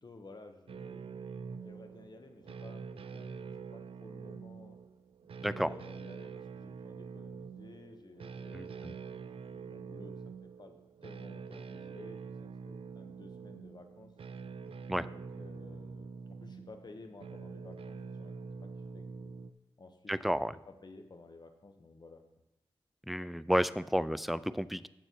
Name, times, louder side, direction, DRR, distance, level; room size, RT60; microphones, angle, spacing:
voice 1, 0.0-1.0 1.6-3.3 3.7-4.8 5.4-9.0 9.5-10.1 10.4-10.7 11.0-14.1 15.0-16.1 16.4-18.3 18.6-18.7 18.9-19.4 19.8-22.2, left 3 dB, 50° left, 6 dB, 1.1 m, -54 dB
sound 1, 0.7-19.5, right 5 dB, 75° right, 0.5 m, -45 dB
voice 2, 5.4-5.7 8.5-9.0 14.9-15.1 20.1-20.5 23.1-24.9, equal, ahead, 15 dB, 0.4 m, -31 dB
9.5 x 7.5 x 4.6 m, 0.92 s
cardioid pair, 70°, 9 cm